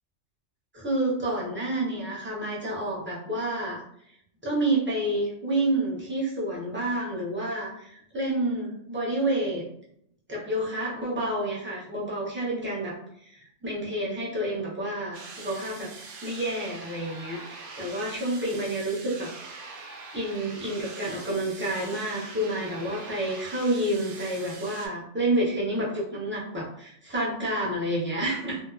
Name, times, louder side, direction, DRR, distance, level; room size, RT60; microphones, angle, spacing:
voice 1, 0.7-3.8 4.4-9.6 10.3-15.9 16.2-19.3 20.1-28.6, right 1 dB, 15° right, -5 dB, 0.4 m, -29 dB
sound 1, 15.1-24.9, right 3 dB, 60° right, 0.6 m, -43 dB
2.7 x 2.1 x 2.3 m, 0.70 s
omnidirectional pair, 1.3 m